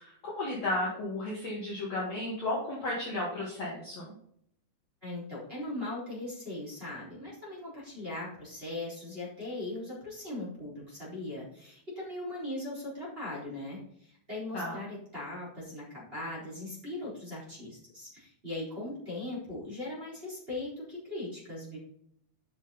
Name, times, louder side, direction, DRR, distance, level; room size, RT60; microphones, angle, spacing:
voice 1, 0.0-4.1 14.5-14.8, left 2 dB, 50° left, -4 dB, 2.3 m, -34 dB
voice 2, 5.0-21.8, left 2 dB, 15° right, -7 dB, 3.9 m, -39 dB
9.9 x 6.1 x 4.2 m, 0.69 s
omnidirectional pair, 4.5 m